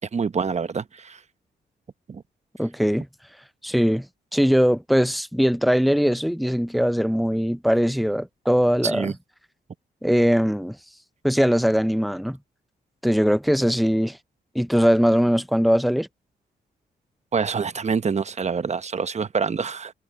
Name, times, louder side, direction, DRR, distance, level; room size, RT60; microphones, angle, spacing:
voice 1, 0.1-1.2 2.1-2.2 8.8-9.1 17.3-19.9, right 5 dB, 40° right, 0.9 m, -26 dB
voice 2, 2.6-3.1 3.6-4.1 4.3-9.1 10.0-10.8 11.2-12.4 13.0-14.2 14.5-16.1, equal, ahead, 0.5 m, -21 dB
cardioid pair, 70°, 18 cm